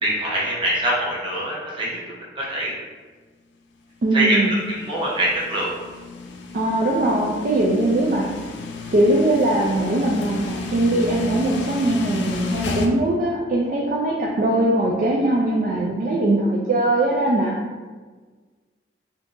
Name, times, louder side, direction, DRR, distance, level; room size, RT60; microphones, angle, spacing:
voice 1, 0.0-2.0 2.3-2.7 4.1-4.4 4.8-5.7, right 1 dB, 25° right, -5 dB, 0.7 m, -23 dB
voice 2, 4.0-4.6 6.5-8.3 8.9-17.6, right 1 dB, 45° right, -4 dB, 0.3 m, -21 dB
sound 1, 4.5-12.9, left 4 dB, 80° left, 0.4 m, -32 dB
3.6 x 2.6 x 2.4 m, 1.4 s
head